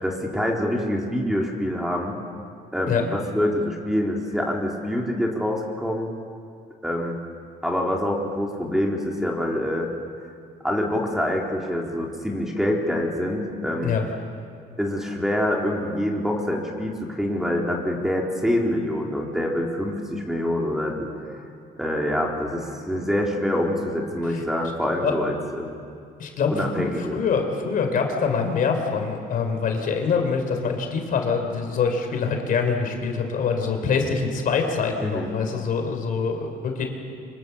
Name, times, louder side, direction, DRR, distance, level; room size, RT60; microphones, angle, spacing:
voice 1, 0.0-2.2 2.7-6.1 6.8-7.2 7.6-9.9 10.6-14.0 14.8-21.4 21.8-25.8 26.5-27.2 35.0-35.3, left 1 dB, 5° right, 0 dB, 3.8 m, -26 dB
voice 2, 26.2-36.8, left 5 dB, 55° left, 4 dB, 3.8 m, -24 dB
25.5 x 24.0 x 7.1 m, 2.4 s
cardioid pair, 110°, 17 cm